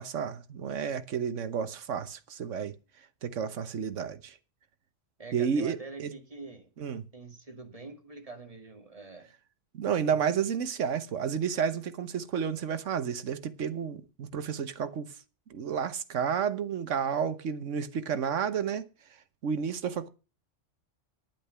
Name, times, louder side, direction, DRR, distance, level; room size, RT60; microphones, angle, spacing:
voice 1, 0.0-2.7 3.2-4.4 5.3-6.1 6.8-7.1 9.7-15.1 15.5-18.9 19.4-20.1, right 7 dB, 85° right, 1.4 m, -31 dB
voice 2, 5.2-6.7 7.1-9.3 9.9-10.2, right 3 dB, 30° right, 2.4 m, -45 dB
10.5 x 9.0 x 6.8 m
omnidirectional pair, 1.3 m